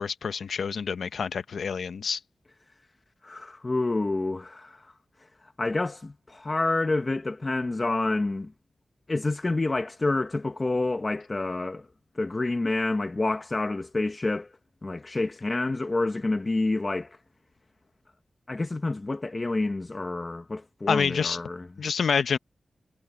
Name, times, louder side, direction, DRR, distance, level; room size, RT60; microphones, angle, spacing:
voice 1, 0.0-2.2 20.9-21.4 21.8-22.4, left 6 dB, 80° left, 0.8 m, -27 dB
voice 2, 3.2-4.9 5.4-8.5 9.1-11.9 12.1-14.5 14.8-17.2 18.5-21.7, left 2 dB, 25° left, 1.1 m, -28 dB
wide cardioid pair, 155°, 0 cm